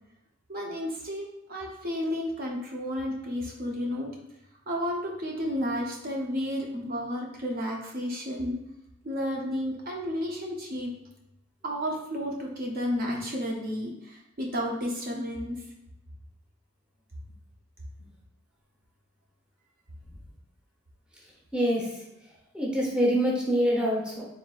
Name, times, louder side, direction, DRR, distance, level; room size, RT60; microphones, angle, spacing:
voice 1, 0.5-4.1 4.7-8.6 9.0-10.9 11.6-15.7, equal, 45° right, -1 dB, 0.6 m, -32 dB
voice 2, 21.5-22.0 22.5-24.3, equal, 5° right, -3 dB, 0.7 m, -25 dB
3.9 x 3.9 x 2.3 m, 0.87 s
head